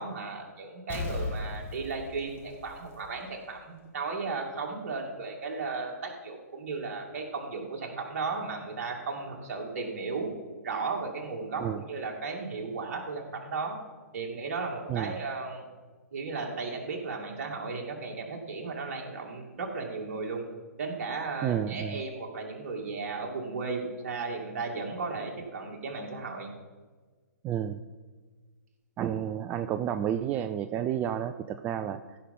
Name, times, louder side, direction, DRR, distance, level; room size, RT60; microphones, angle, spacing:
voice 1, 0.0-10.3 10.6-13.8 14.1-15.6 16.1-20.4 20.8-26.5, right 4 dB, 50° right, 1 dB, 2.4 m, -35 dB
Explosion, 0.9-3.5 3.8-3.9, left 2 dB, 20° left, 1.7 m, -37 dB
voice 2, 21.4-22.0 27.4-27.8 29.0-32.2, right 9 dB, 15° right, 9 dB, 0.3 m, -31 dB
15.5 x 5.8 x 5.5 m, 1.4 s
figure-of-eight pair, 125°, 9 cm